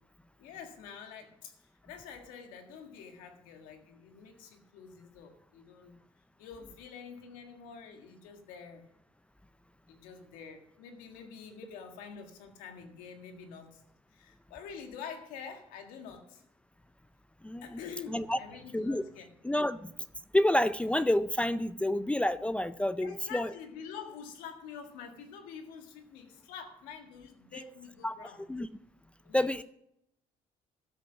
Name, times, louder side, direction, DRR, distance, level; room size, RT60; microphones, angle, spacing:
voice 1, 0.4-1.6 1.8-6.0 6.4-8.9 9.9-13.8 14.1-16.4 17.6-19.3 23.0-28.5 29.2-29.6, left 6 dB, 90° left, 5 dB, 1.8 m, -47 dB
voice 2, 17.4-17.8 18.1-18.4 18.7-19.0 19.4-20.0 20.3-23.5 28.0-28.7 29.3-29.6, left 1 dB, 10° left, 14 dB, 0.5 m, -29 dB
13.0 x 7.8 x 5.9 m, 0.76 s
cardioid pair, 90°, 14 cm